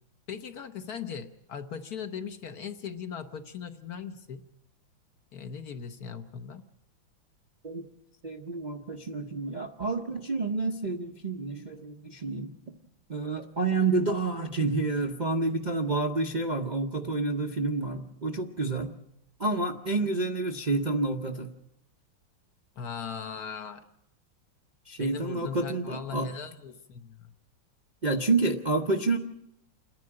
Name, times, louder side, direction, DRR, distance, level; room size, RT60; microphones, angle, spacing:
voice 1, 0.3-4.4 5.3-6.6 22.8-23.8 25.0-27.3, left 7 dB, 55° left, 8 dB, 1.3 m, -39 dB
voice 2, 8.2-12.5 13.1-18.9 19.4-21.5 24.9-26.3 28.0-29.2, right 3 dB, 40° right, 3 dB, 0.7 m, -29 dB
28.5 x 10.5 x 8.7 m, 0.79 s
omnidirectional pair, 2.1 m